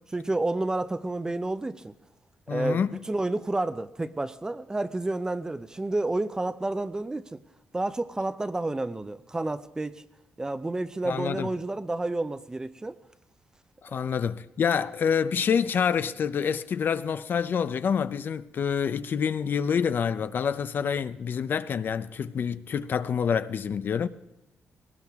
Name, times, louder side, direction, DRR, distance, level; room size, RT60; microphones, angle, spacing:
voice 1, 0.1-1.9 2.5-7.4 7.7-10.0 10.4-13.0, right 2 dB, 15° right, 0.6 m, -30 dB
voice 2, 2.5-3.0 11.1-11.5 13.8-24.1, left 7 dB, 50° left, 0.6 m, -27 dB
20.0 x 18.5 x 3.6 m
cardioid pair, 130°, 4 cm